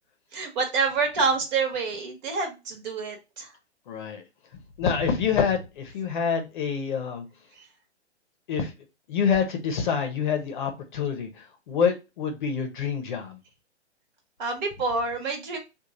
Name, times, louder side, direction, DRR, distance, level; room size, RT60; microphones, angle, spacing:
voice 1, 0.3-3.5 7.6-7.7 14.4-15.6, right 4 dB, 40° right, 1.2 m, -27 dB
voice 2, 3.9-4.2 4.8-7.2 8.5-8.7 9.1-13.4, left 6 dB, 45° left, 0.8 m, -27 dB
3.1 x 2.4 x 3.7 m
hypercardioid pair, 130°, 35 cm